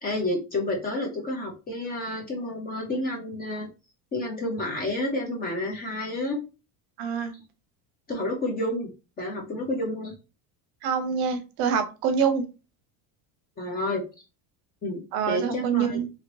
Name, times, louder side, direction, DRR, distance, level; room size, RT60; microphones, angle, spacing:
voice 1, 0.0-3.7 4.1-6.4 7.3-7.4 8.1-8.9 9.2-10.1 13.6-14.2 14.8-15.0 15.3-16.0, left 1 dB, 20° left, 0 dB, 0.4 m, -30 dB
voice 2, 7.0-7.3 10.8-12.5 15.1-16.1, right 7 dB, 55° right, 9 dB, 0.6 m, -25 dB
2.9 x 2.7 x 3.0 m, 0.31 s
cardioid pair, 165°, 46 cm